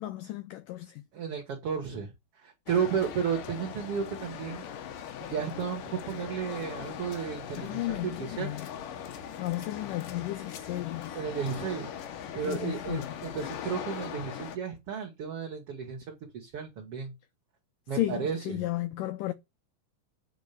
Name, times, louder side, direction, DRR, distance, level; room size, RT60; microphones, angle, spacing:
voice 1, 0.0-1.0 7.6-8.7 9.4-11.2 12.4-13.1 17.9-19.3, left 15 dB, 85° left, 1.9 m, -34 dB
voice 2, 1.1-2.1 2.4-4.7 5.2-8.5 11.1-11.9 12.3-17.1 17.9-18.6, right 7 dB, 50° right, 2.0 m, -33 dB
sound 1, 2.7-14.6, left 9 dB, 65° left, 2.7 m, -40 dB
9.3 x 5.2 x 6.8 m
omnidirectional pair, 4.8 m